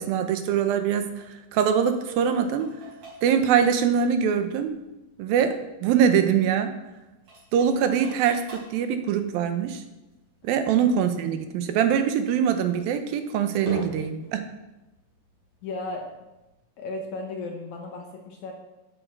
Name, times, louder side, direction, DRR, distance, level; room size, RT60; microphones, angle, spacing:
voice 1, 0.0-2.7 3.2-4.8 5.2-6.7 7.5-9.8 10.4-14.4, right 8 dB, 80° right, 8 dB, 2.6 m, -23 dB
sound 1, 0.7-16.5, right 1 dB, 45° right, 5.1 m, -46 dB
voice 2, 15.6-16.1 16.8-18.5, left 2 dB, 65° left, 2 dB, 2.1 m, -34 dB
12.0 x 8.1 x 4.7 m, 1.0 s
omnidirectional pair, 4.3 m